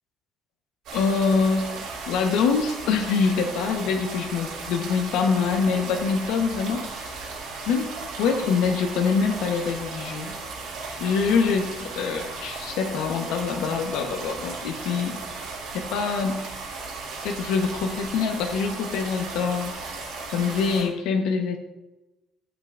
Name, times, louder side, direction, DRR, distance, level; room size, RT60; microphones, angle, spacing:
voice 1, 0.9-7.1 7.7-10.3 11.0-15.2 15.7-16.4 17.2-20.0 20.3-21.6, left 5 dB, 90° left, 3 dB, 1.0 m, -25 dB
sound 1, 0.9-20.8, right 4 dB, 70° right, 3.3 m, -36 dB
12.5 x 8.2 x 2.5 m, 1.0 s
cardioid pair, 145°, 0 cm